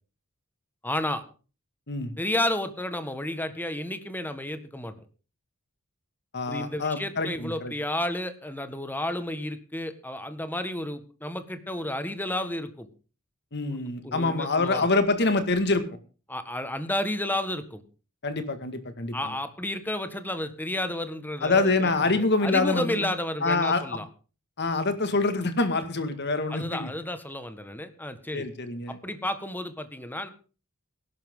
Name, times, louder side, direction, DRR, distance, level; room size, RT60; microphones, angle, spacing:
voice 1, 0.8-1.2 2.2-4.9 6.5-12.9 13.7-14.9 16.3-17.8 19.1-24.0 26.5-28.4 28.9-30.3, left 1 dB, 10° left, 10 dB, 1.6 m, -32 dB
voice 2, 6.3-7.7 13.5-15.8 18.2-19.3 21.4-23.1 23.4-24.0 24.6-26.9 28.3-29.0, left 3 dB, 55° left, 10 dB, 2.0 m, -26 dB
18.5 x 11.5 x 3.8 m, 0.35 s
head